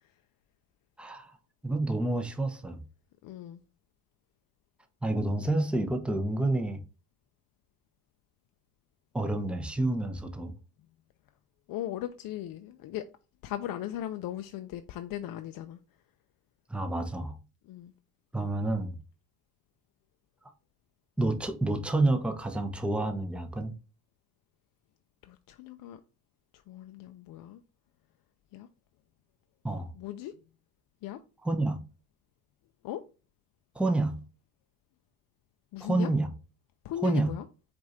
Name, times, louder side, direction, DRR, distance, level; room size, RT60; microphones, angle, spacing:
voice 1, 1.0-1.3 1.6-2.8 5.0-6.8 9.1-10.5 16.7-17.4 18.3-19.0 21.2-23.7 29.6-29.9 31.4-31.8 33.7-34.2 35.8-36.3 37.0-37.3, right 2 dB, 5° right, 0.7 m, -29 dB
voice 2, 3.2-3.6 11.7-13.1 13.4-15.8 17.7-17.9 25.2-26.0 26.5-27.6 28.5-28.7 30.0-30.3 31.0-31.2 32.8-33.0 35.7-36.1 36.8-37.4, left 12 dB, 65° left, 0.5 m, -38 dB
4.8 x 2.6 x 4.2 m
supercardioid pair, 70°, 38 cm